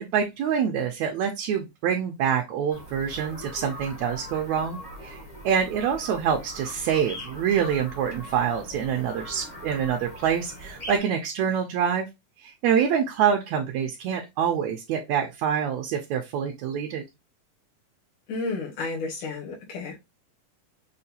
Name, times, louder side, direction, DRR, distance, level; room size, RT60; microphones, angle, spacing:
voice 1, 0.0-12.1 12.4-17.0, right 8 dB, 75° right, 1.7 m, -26 dB
sound 1, 2.7-11.0, equal, 60° left, 0.4 m, -41 dB
voice 2, 18.3-20.0, left 3 dB, 80° left, 2.8 m, -32 dB
6.4 x 2.3 x 2.7 m
omnidirectional pair, 3.5 m